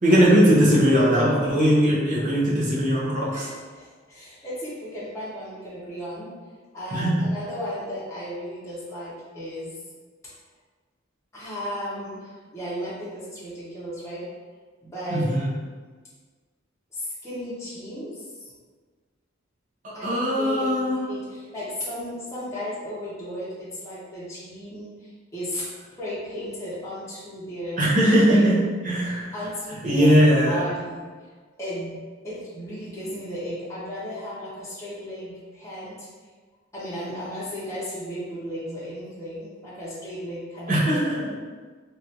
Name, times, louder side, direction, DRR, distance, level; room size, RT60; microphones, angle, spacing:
voice 1, 0.0-3.5 6.9-7.3 15.1-15.6 19.8-21.1 27.8-29.3 29.8-30.7 40.7-41.3, equal, 40° right, -5 dB, 0.7 m, -20 dB
voice 2, 3.3-6.3 6.7-9.7 11.3-14.2 14.8-15.3 16.9-18.5 19.9-25.6 26.0-27.8 28.3-28.5 29.3-30.2 30.5-31.0 31.6-32.0 32.2-36.1 36.7-41.1, equal, 15° left, -10 dB, 0.7 m, -35 dB
3.1 x 2.4 x 2.8 m, 1.5 s
head